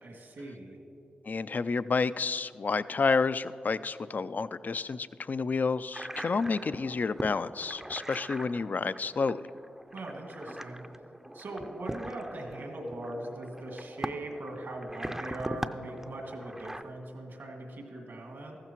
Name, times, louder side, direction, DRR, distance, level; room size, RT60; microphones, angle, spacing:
voice 1, 0.0-0.8 9.9-10.8 11.3-18.6, right 1 dB, 80° right, 1 dB, 1.9 m, -40 dB
voice 2, 1.3-9.5, left 4 dB, 50° left, 15 dB, 0.3 m, -30 dB
sound 1, 5.9-16.8, right 1 dB, 10° right, 0.5 m, -41 dB
14.0 x 12.5 x 3.0 m, 2.9 s
cardioid pair, 45°, 4 cm